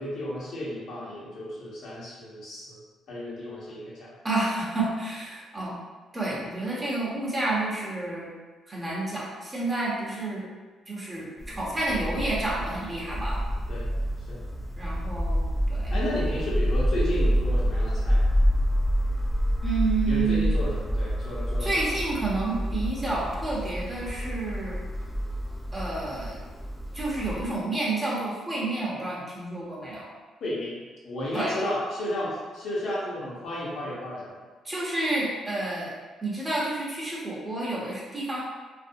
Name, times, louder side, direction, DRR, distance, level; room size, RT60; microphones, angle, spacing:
voice 1, 0.0-2.8 3.1-4.1 6.3-6.5 13.7-13.9 14.3-14.4 15.9-18.3 20.1-21.9 30.4-30.8 31.0-34.4, left 1 dB, 70° left, -7 dB, 0.9 m, -33 dB
voice 2, 4.2-5.8 6.1-8.3 8.7-10.4 10.9-13.4 14.8-16.0 19.6-20.5 21.6-24.8 25.7-26.4 26.9-30.1 31.3-31.6 34.6-35.9 36.2-38.5, right 2 dB, 20° right, -6 dB, 0.8 m, -30 dB
sound 1, 11.4-27.5, equal, 10° left, 0.3 m, -28 dB
2.5 x 2.0 x 2.6 m, 1.4 s
cardioid pair, 90°, 0 cm